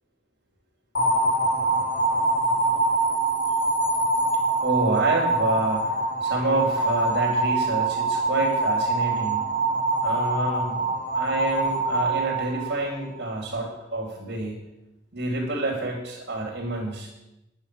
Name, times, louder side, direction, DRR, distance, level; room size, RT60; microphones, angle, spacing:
sound 1, 0.9-13.1, right 2 dB, 80° left, 4.5 m, -24 dB
voice 1, 4.6-9.5 10.0-10.8 11.1-14.7 15.1-17.1, right 2 dB, 60° right, -6 dB, 3.6 m, -28 dB
11.0 x 9.5 x 7.1 m, 0.93 s
head